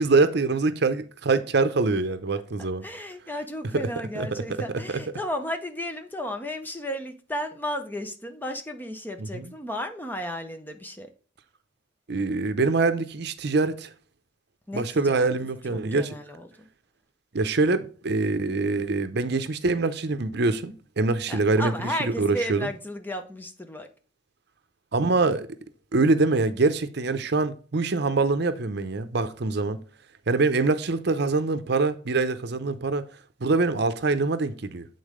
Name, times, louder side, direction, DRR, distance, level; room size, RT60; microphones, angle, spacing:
voice 1, 0.0-2.9 4.1-4.3 4.9-5.0 9.2-9.5 12.1-13.9 14.7-16.1 17.3-22.7 24.9-25.5 25.9-29.8 30.3-33.0 33.4-34.9, right 3 dB, 60° right, 0.7 m, -24 dB
voice 2, 2.8-11.1 14.7-15.3 15.7-16.7 21.3-23.9, equal, 10° left, 0.7 m, -34 dB
8.5 x 4.0 x 4.9 m
head